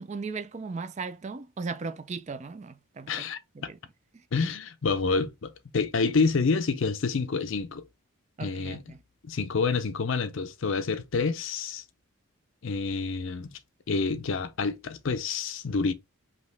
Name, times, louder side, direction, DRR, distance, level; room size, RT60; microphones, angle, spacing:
voice 1, 0.0-3.3 3.6-3.8 4.1-4.2 8.4-9.0, right 4 dB, 30° right, 0.3 m, -37 dB
voice 2, 3.1-3.7 4.3-7.8 8.4-8.9 9.2-11.8 12.6-13.5 13.9-15.9, left 4 dB, 60° left, 0.5 m, -28 dB
5.1 x 2.9 x 3.3 m
head